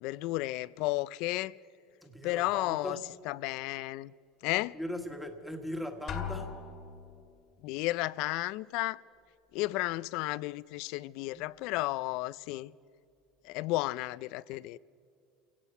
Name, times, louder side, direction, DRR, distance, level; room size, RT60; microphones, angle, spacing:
voice 1, 0.0-1.6 2.2-3.0 3.3-4.1 4.4-4.8 7.6-9.0 9.5-12.7 13.4-14.8, left 19 dB, 60° left, 0.4 m, -33 dB
voice 2, 2.0-3.0 4.7-6.5 11.2-11.5, equal, ahead, 1.5 m, -39 dB
Drum, 6.1-7.3, left 7 dB, 35° left, 1.8 m, -39 dB
28.0 x 17.5 x 5.6 m
cardioid pair, 155°, 0 cm